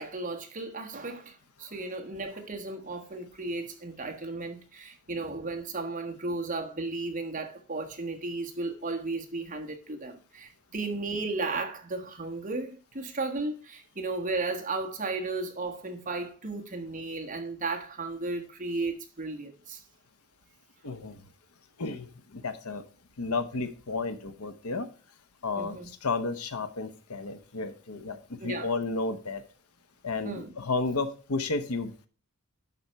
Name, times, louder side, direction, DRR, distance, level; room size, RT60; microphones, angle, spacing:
voice 1, 0.0-19.8 25.6-25.9 28.4-28.7 30.2-30.5, right 3 dB, 35° right, 1.4 m, -34 dB
voice 2, 20.8-21.2 21.8-22.8 23.2-24.9 25.4-29.4 30.0-32.1, left 3 dB, 85° left, 0.9 m, -32 dB
11.0 x 4.3 x 4.6 m
head